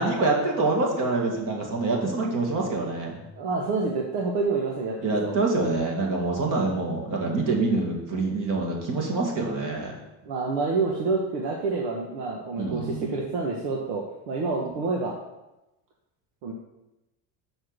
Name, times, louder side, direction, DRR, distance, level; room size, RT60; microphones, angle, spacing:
voice 1, 0.0-3.2 5.0-9.9 12.6-13.2 14.6-14.7, right 3 dB, 45° right, 0 dB, 2.0 m, -26 dB
voice 2, 3.4-5.3 10.2-15.2 16.4-16.5, right 3 dB, 90° right, 0 dB, 1.2 m, -28 dB
6.3 x 4.7 x 6.6 m, 0.98 s
cardioid pair, 130°, 46 cm